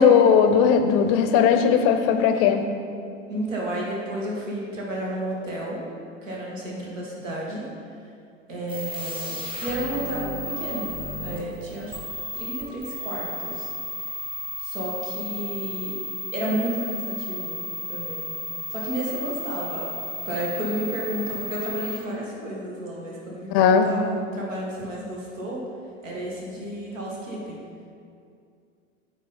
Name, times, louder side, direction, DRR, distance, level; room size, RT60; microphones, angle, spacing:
voice 1, 0.0-2.7 23.5-23.9, left 7 dB, 35° left, 7 dB, 0.6 m, -18 dB
voice 2, 3.3-5.8 6.2-7.7 8.5-10.9 11.2-12.0 12.3-13.7 14.6-16.0 16.3-17.6 17.9-18.3 18.7-19.9 20.3-24.0 24.3-25.6 26.0-27.6, right 1 dB, 75° right, -4 dB, 1.8 m, -31 dB
sound 1, 8.7-22.0, left 1 dB, 15° right, 1.1 m, -34 dB
8.7 x 4.1 x 4.2 m, 2.4 s
figure-of-eight pair, 85°, 38 cm